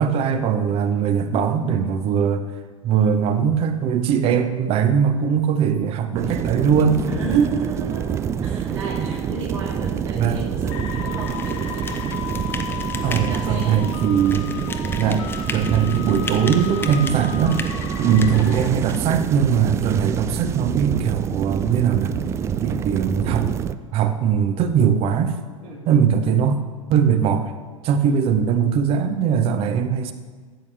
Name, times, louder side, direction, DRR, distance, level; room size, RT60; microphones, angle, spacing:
voice 1, 0.0-2.4 2.8-7.0 7.3-7.7 9.0-9.1 10.2-10.4 13.0-14.5 15.0-17.6 18.0-22.2 22.6-23.5 23.9-25.3 25.9-26.6 26.9-27.5 27.8-30.1, right 7 dB, 35° right, 9 dB, 0.9 m, -20 dB
sound 1, 6.1-23.7, right 8 dB, 15° right, 0.3 m, -27 dB
voice 2, 7.0-12.0 12.9-13.8 18.0-18.1 25.6-25.8 28.0-28.2, right 3 dB, 70° right, -10 dB, 3.1 m, -33 dB
sound 2, 10.7-18.7, left 9 dB, 50° left, 0.9 m, -35 dB
sound 3, 11.2-19.0, left 3 dB, 10° left, 0.8 m, -36 dB
15.5 x 8.5 x 3.4 m, 1.5 s
figure-of-eight pair, 95°, 17 cm